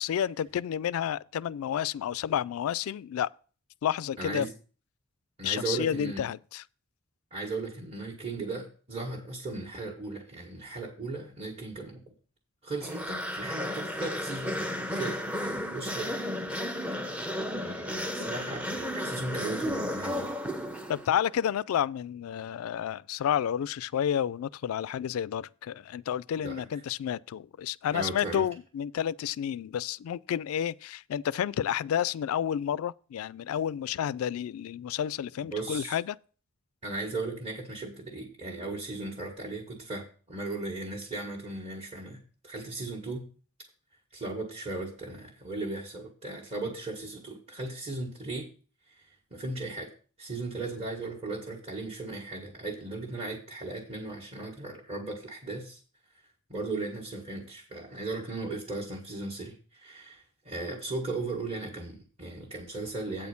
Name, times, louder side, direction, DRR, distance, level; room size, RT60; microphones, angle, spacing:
voice 1, 0.0-3.3 3.8-4.5 5.4-6.6 20.9-36.2, left 9 dB, 85° left, 0.3 m, -30 dB
voice 2, 4.2-4.5 5.4-6.2 7.3-12.0 12.6-16.1 16.4-17.3 17.5-20.4 26.4-26.6 27.9-28.5 35.5-36.0 36.8-43.3 44.1-48.5 48.9-49.0 49.3-49.9 50.2-55.8 56.5-63.3, right 3 dB, 30° right, 1.5 m, -37 dB
sound 1, 12.8-21.3, equal, 5° right, 0.6 m, -33 dB
8.8 x 4.3 x 6.9 m
head